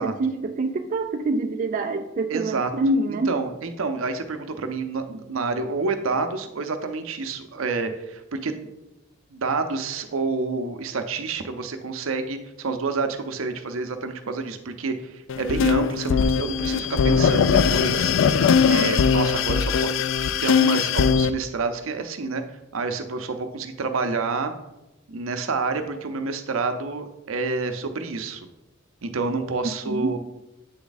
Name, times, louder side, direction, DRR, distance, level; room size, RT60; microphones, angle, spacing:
voice 1, 0.0-3.4 29.9-30.1, right 2 dB, 40° right, 4 dB, 0.4 m, -26 dB
voice 2, 2.3-2.7 3.1-8.7 9.3-18.1 18.7-20.1 20.4-22.4 22.7-24.5 25.1-28.5 29.0-30.2, right 4 dB, 75° right, 7 dB, 0.6 m, -28 dB
sound 1, 15.3-21.3, left 6 dB, 65° left, 0.3 m, -20 dB
8.5 x 3.5 x 4.0 m, 0.95 s
head